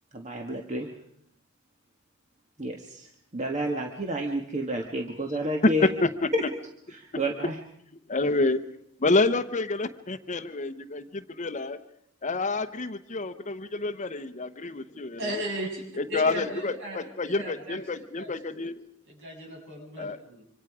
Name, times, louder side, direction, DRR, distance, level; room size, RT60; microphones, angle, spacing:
voice 1, 0.1-0.9 2.6-5.9 6.3-6.4 7.0-7.6, equal, 35° right, 2 dB, 1.6 m, -30 dB
voice 2, 5.8-6.3 8.1-8.7 9.0-11.8 12.2-15.4 16.0-18.8 20.0-20.2, left 3 dB, 35° left, 11 dB, 0.9 m, -28 dB
voice 3, 15.2-15.8 16.1-17.8 18.2-18.3 19.1-20.4, equal, 60° right, 0 dB, 7.7 m, -36 dB
26.5 x 25.5 x 4.9 m, 0.72 s
head